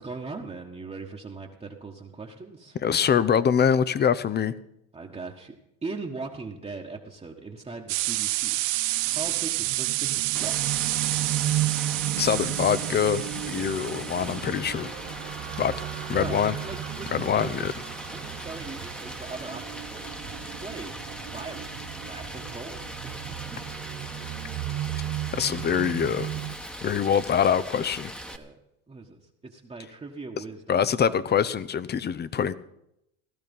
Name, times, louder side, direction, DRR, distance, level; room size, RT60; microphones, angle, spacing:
voice 1, 0.0-2.8 4.9-8.6 9.1-10.6 15.2-15.6 16.2-17.7 18.1-20.1 20.6-20.9 21.2-23.6 28.2-28.6 28.9-31.1, right 3 dB, 15° right, 0 dB, 1.4 m, -40 dB
voice 2, 2.8-4.5 12.2-15.0 15.6-15.7 16.1-16.6 17.1-17.7 25.3-26.3 26.8-28.1 30.7-32.5, left 8 dB, 25° left, 17 dB, 0.7 m, -24 dB
sound 1, 7.9-14.5, right 19 dB, 85° right, 0.5 m, -29 dB
sound 2, 8.5-26.6, right 14 dB, 50° right, 0.9 m, -35 dB
Stream, 10.3-28.4, equal, 5° left, 1.2 m, -40 dB
16.5 x 12.0 x 5.4 m, 0.82 s
supercardioid pair, 95°, 37 cm